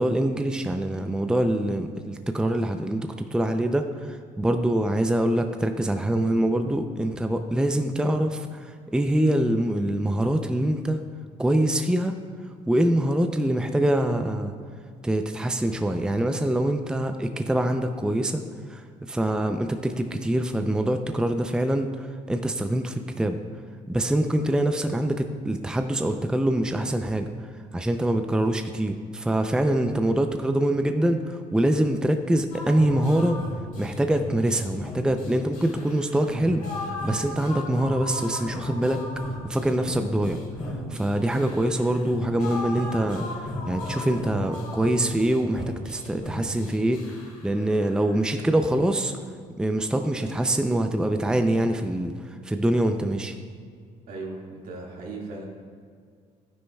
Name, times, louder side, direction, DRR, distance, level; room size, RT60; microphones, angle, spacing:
voice 1, 0.0-11.0 11.4-12.1 12.7-14.5 15.0-18.4 18.7-23.4 23.9-27.3 27.7-33.4 33.8-39.0 39.4-40.4 40.9-49.1 49.6-53.3, right 1 dB, 5° right, 6 dB, 0.5 m, -24 dB
sound 1, 32.5-48.3, left 1 dB, 65° left, 2.2 m, -36 dB
voice 2, 54.1-55.4, right 3 dB, 75° right, -2 dB, 2.0 m, -37 dB
11.0 x 9.7 x 2.3 m, 2.1 s
supercardioid pair, 80°, 15 cm